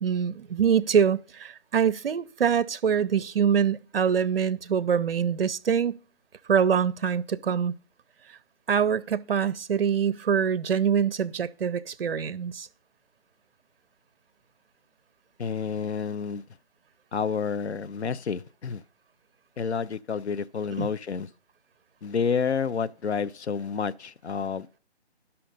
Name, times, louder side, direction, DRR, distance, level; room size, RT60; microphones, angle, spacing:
voice 1, 0.0-6.0 6.5-7.7 8.7-12.7 20.8-20.9, right 7 dB, 60° right, 0.5 m, -24 dB
voice 2, 15.4-16.4 17.1-18.8 19.6-21.3 22.0-24.7, left 6 dB, 75° left, 0.5 m, -29 dB
11.5 x 5.6 x 4.0 m
figure-of-eight pair, 150°, 34 cm